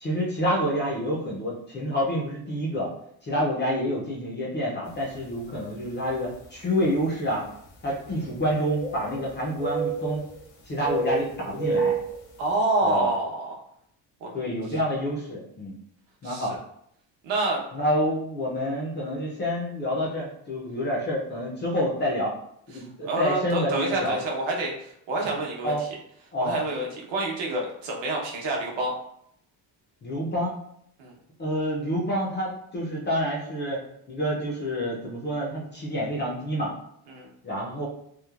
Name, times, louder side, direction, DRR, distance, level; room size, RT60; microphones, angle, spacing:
voice 1, 0.0-2.9 3.2-7.5 7.8-10.2 10.7-12.0 12.8-13.1 14.3-15.8 16.2-16.6 17.7-22.3 22.7-24.2 25.6-25.8 26.3-26.6 30.0-30.6 31.4-33.8 34.1-36.7 37.4-37.9, equal, 25° left, -5 dB, 0.3 m, -28 dB
sound 1, 5.2-5.3 6.1-6.2 8.0-9.3 9.6-10.4 10.8-12.2, right 4 dB, 65° left, 0.7 m, -29 dB
voice 2, 12.4-13.6 14.2-14.4 16.2-16.6 17.2-17.6 22.7-25.9 26.4-28.9 31.0-31.2 37.1-37.3, right 2 dB, 70° right, -1 dB, 0.8 m, -28 dB
3.0 x 2.0 x 2.2 m, 0.72 s
cardioid pair, 165°, 47 cm